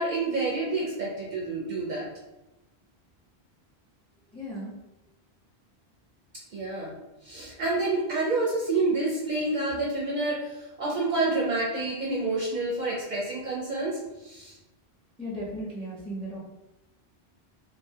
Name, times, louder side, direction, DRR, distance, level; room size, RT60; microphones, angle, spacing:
voice 1, 0.0-2.1 6.5-7.0 7.2-14.6, right 2 dB, 55° right, -5 dB, 0.6 m, -28 dB
voice 2, 4.3-4.7 15.2-16.4, equal, 5° left, -5 dB, 0.5 m, -35 dB
2.2 x 2.1 x 2.7 m, 0.96 s
omnidirectional pair, 1.1 m